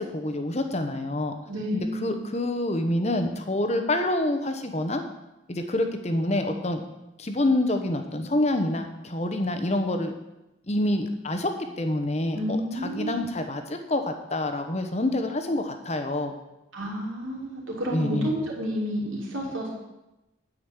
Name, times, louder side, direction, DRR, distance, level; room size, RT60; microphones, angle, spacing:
voice 1, 0.0-1.3 1.7-5.0 5.5-6.8 7.2-10.1 10.7-11.5 11.8-12.6 12.8-16.3 17.9-18.3, left 1 dB, 35° left, 6 dB, 1.0 m, -27 dB
voice 2, 1.5-2.1 12.3-13.3 16.7-19.7, equal, 85° right, -3 dB, 3.3 m, -30 dB
9.7 x 5.1 x 8.1 m, 0.95 s
head